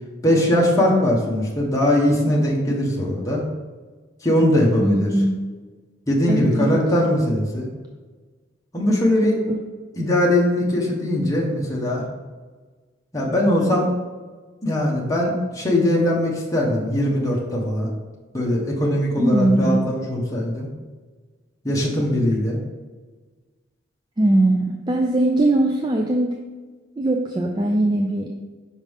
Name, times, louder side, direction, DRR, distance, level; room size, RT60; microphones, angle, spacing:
voice 1, 0.2-3.4 4.2-5.1 6.1-7.7 8.7-9.3 10.0-12.0 13.1-13.9 14.6-17.9 18.3-20.7 21.6-22.6, left 1 dB, 15° left, -3 dB, 1.0 m, -20 dB
voice 2, 4.8-5.4 6.3-6.8 9.2-9.6 19.2-19.9 24.2-26.3 27.0-28.3, right 1 dB, 20° right, 1 dB, 0.4 m, -20 dB
5.2 x 5.2 x 3.5 m, 1.4 s
head